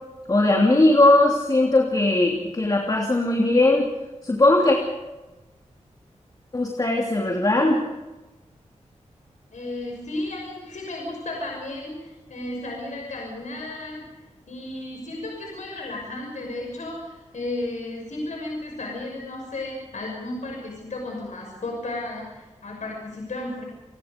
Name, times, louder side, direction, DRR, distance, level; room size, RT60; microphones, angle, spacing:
voice 1, 0.3-3.9 4.2-4.8 6.5-7.8, left 2 dB, 30° left, 0 dB, 3.0 m, -19 dB
voice 2, 9.5-14.0 14.5-23.6, left 2 dB, 85° left, 0 dB, 6.1 m, -33 dB
29.5 x 21.0 x 5.2 m, 1.1 s
wide cardioid pair, 120°, 12 cm